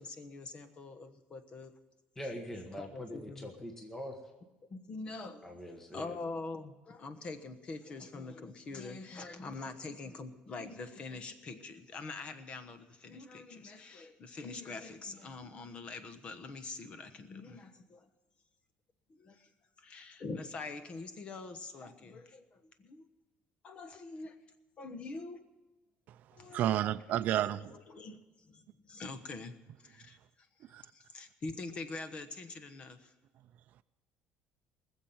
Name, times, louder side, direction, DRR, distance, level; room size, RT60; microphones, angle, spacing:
voice 1, 0.0-1.7 2.8-3.5 4.7-5.5 5.9-18.1 19.1-19.5 19.8-23.0 23.6-24.3 24.8-25.4 26.3-26.7 27.4-29.5 29.8-30.2 30.9-33.1, left 3 dB, 35° left, 1.2 m, -44 dB
voice 2, 2.1-4.2 5.4-6.1 9.6-9.7, equal, 10° left, 1.4 m, -43 dB
voice 3, 26.5-27.6 30.7-30.8, right 12 dB, 55° right, 0.5 m, -30 dB
20.0 x 7.4 x 9.4 m
cardioid pair, 150°, 3 cm